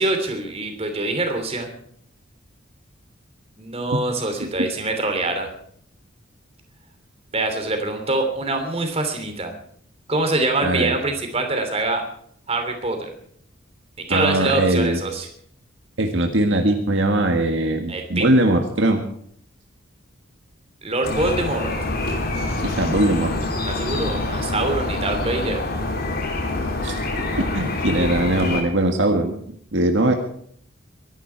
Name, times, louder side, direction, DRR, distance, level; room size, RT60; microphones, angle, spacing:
voice 1, 0.0-1.7 3.6-5.5 7.3-9.5 10.1-12.0 12.5-13.1 14.1-15.3 17.9-18.3 20.8-21.7 23.7-25.6, right 2 dB, 30° right, 5 dB, 3.1 m, -24 dB
voice 2, 10.6-10.9 14.1-15.0 16.0-19.0 22.6-23.3 26.8-29.4 29.7-30.1, right 1 dB, 65° right, 4 dB, 1.7 m, -20 dB
sound 1, 21.0-28.6, left 2 dB, 50° left, 3.2 m, -26 dB
23.0 x 11.5 x 4.6 m, 0.65 s
head